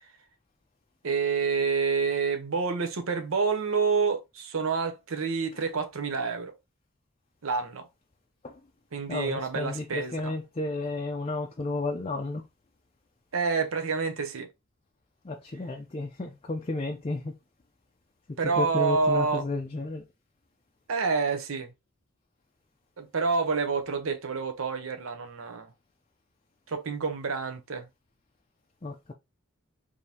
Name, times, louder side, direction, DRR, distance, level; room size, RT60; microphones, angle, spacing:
voice 1, 1.0-6.5 7.4-7.9 8.9-10.3 13.3-14.5 18.4-19.4 20.9-21.7 23.0-25.7 26.7-27.9, right 5 dB, 70° right, 0.7 m, -28 dB
voice 2, 9.1-12.4 15.2-17.3 18.3-20.0 28.8-29.1, left 2 dB, 30° left, 0.5 m, -32 dB
5.0 x 2.7 x 2.8 m
head